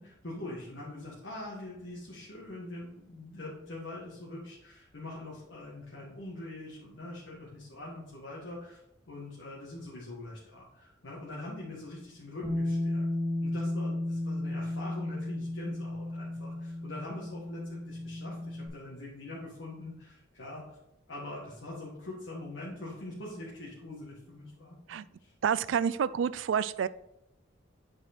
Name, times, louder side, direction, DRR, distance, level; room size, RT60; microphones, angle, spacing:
voice 1, 0.0-13.0 13.4-20.6 21.1-25.3, left 2 dB, 75° left, -6 dB, 1.7 m, -43 dB
Bass guitar, 12.4-18.7, left 1 dB, ahead, 1.9 m, -34 dB
voice 2, 25.4-26.9, right 7 dB, 70° right, 17 dB, 0.3 m, -28 dB
7.9 x 4.8 x 4.3 m, 0.83 s
head